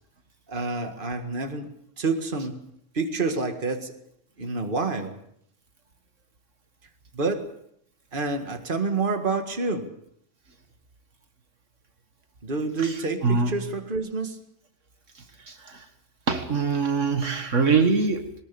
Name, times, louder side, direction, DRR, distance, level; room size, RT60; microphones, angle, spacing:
voice 1, 0.5-1.7 2.0-2.6 2.9-3.9 4.4-5.2 7.1-7.5 8.1-9.9 12.4-14.4, right 3 dB, 40° right, 6 dB, 2.1 m, -28 dB
voice 2, 12.8-13.5 15.5-15.9 16.3-18.4, right 4 dB, 70° right, 6 dB, 2.1 m, -24 dB
22.0 x 20.0 x 7.0 m, 0.72 s
omnidirectional pair, 1.3 m